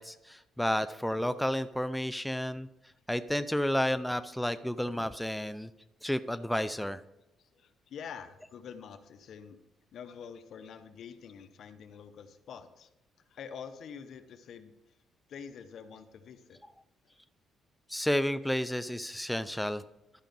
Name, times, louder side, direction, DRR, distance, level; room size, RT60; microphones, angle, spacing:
voice 1, 0.0-2.7 3.1-5.7 6.0-7.0 17.9-19.8, left 1 dB, 5° left, 11 dB, 0.4 m, -31 dB
voice 2, 7.4-9.6 9.9-12.9 13.3-14.7 15.3-16.6, left 7 dB, 65° left, 9 dB, 0.8 m, -46 dB
12.0 x 5.0 x 5.3 m, 0.90 s
cardioid pair, 90°, 0 cm